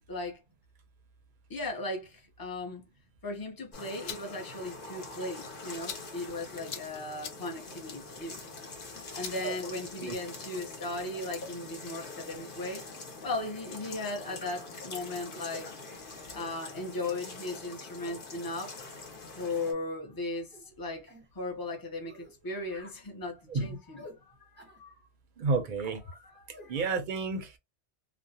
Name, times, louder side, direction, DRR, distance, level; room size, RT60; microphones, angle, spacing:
voice 1, 0.1-0.4 1.5-2.9 3.2-8.4 9.1-12.8 13.2-15.8 16.3-18.8 19.3-21.1 21.3-25.0 26.1-26.9, left 2 dB, 25° left, 0.5 m, -37 dB
sound 1, 3.7-19.7, left 3 dB, 55° left, 0.9 m, -44 dB
sound 2, 3.8-10.3, left 8 dB, 85° left, 0.9 m, -47 dB
sound 3, 20.5-20.7 21.1-21.3 22.1-22.3 22.7-23.0 24.0-24.2 24.6-24.8 26.5-26.7, left 1 dB, 10° right, 0.7 m, -50 dB
voice 2, 25.4-26.0 26.7-27.6, right 4 dB, 55° right, 0.6 m, -30 dB
2.4 x 2.0 x 2.7 m
omnidirectional pair, 1.1 m